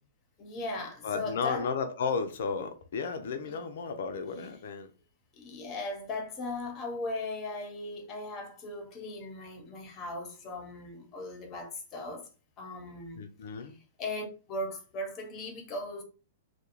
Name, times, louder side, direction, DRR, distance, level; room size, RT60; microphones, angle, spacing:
voice 1, 0.4-1.7 3.4-3.6 4.4-4.5 5.3-12.3 12.6-13.2 13.6-16.0, left 2 dB, 30° left, 0.8 m, -38 dB
voice 2, 1.0-4.9 13.2-13.8, left 5 dB, 65° left, 0.4 m, -33 dB
2.3 x 2.1 x 2.9 m
figure-of-eight pair, 110°, 0 cm